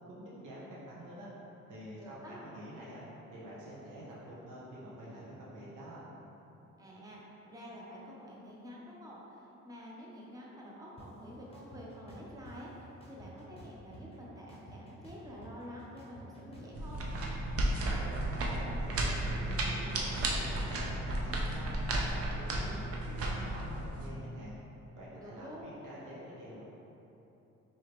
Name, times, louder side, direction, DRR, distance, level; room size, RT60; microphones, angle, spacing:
voice 1, 0.1-1.3 1.7-3.0 3.3-6.1 18.0-24.6 24.9-26.6, equal, 80° right, -7 dB, 1.0 m, -47 dB
voice 2, 2.0-2.5 6.8-17.0 25.2-25.7, equal, 10° right, -5 dB, 0.8 m, -48 dB
sound 1, 11.0-11.1 11.5-12.6 13.0-14.2 14.5-17.0, equal, 20° left, 0.8 m, -51 dB
sound 2, 16.7-24.1, right 1 dB, 50° right, 0.6 m, -33 dB
4.7 x 3.0 x 3.0 m, 3.0 s
cardioid pair, 90°, 30 cm